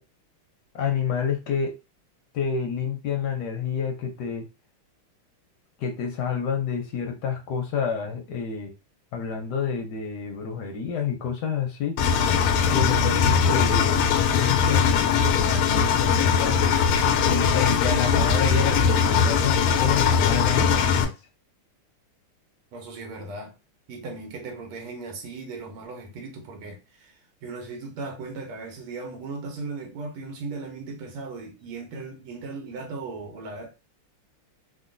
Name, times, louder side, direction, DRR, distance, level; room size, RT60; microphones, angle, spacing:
voice 1, 0.7-1.7 2.3-4.4 5.8-8.7 9.1-12.0 12.7-14.0 14.3-16.6 17.2-21.1, left 6 dB, 70° left, 1.0 m, -29 dB
Engine, 12.0-21.1, left 6 dB, 90° left, 1.5 m, -21 dB
voice 2, 22.7-23.5 23.9-27.2 27.4-33.7, right 3 dB, 90° right, 1.8 m, -37 dB
3.8 x 2.2 x 2.5 m
omnidirectional pair, 2.4 m